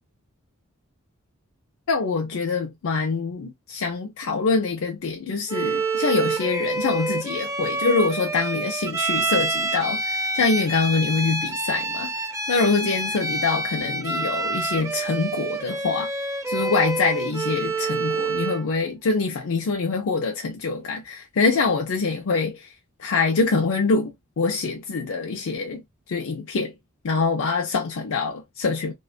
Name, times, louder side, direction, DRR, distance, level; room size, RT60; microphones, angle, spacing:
voice 1, 1.9-16.1 16.5-22.7 23.0-25.8 26.1-26.7 27.0-28.9, left 4 dB, 65° left, 0.5 m, -25 dB
Bowed string instrument, 5.5-18.7, right 3 dB, 15° right, 0.4 m, -27 dB
2.8 x 2.2 x 2.4 m
head